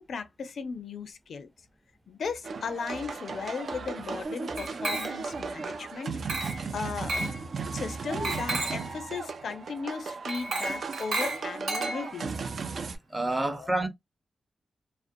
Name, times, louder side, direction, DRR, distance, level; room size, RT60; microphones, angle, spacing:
voice 1, 0.0-1.5 2.1-7.3 7.7-12.4 13.6-13.7, left 5 dB, 75° left, 0.4 m, -37 dB
sound 1, 2.4-13.0, right 4 dB, 65° right, 0.4 m, -36 dB
Glass, 4.6-5.4 6.3-6.7 7.1-7.4 8.2-8.9 10.3-12.3, right 2 dB, 85° right, 1.2 m, -33 dB
voice 2, 13.1-13.9, right 2 dB, 15° right, 0.6 m, -28 dB
2.4 x 2.0 x 2.5 m
cardioid pair, 70°, 0 cm